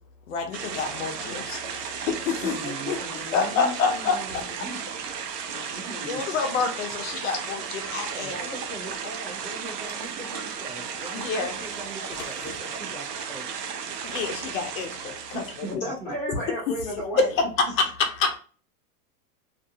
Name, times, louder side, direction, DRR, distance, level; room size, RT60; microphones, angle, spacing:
voice 1, 0.3-3.0 3.3-4.5 6.1-8.3 11.1-11.5 14.0-15.8 16.3-16.4 17.2-18.4, left 5 dB, 55° left, 0.7 m, -27 dB
sound 1, 0.5-15.8, right 7 dB, 80° right, 0.7 m, -34 dB
voice 2, 2.4-6.3 8.1-13.8 15.3-16.1, right 1 dB, 35° right, 0.6 m, -40 dB
sound 2, 9.6-10.5 11.9-12.6, left 5 dB, 90° left, 0.8 m, -45 dB
voice 3, 15.8-17.3, equal, 15° left, 0.4 m, -31 dB
2.6 x 2.3 x 2.6 m
supercardioid pair, 170°, 47 cm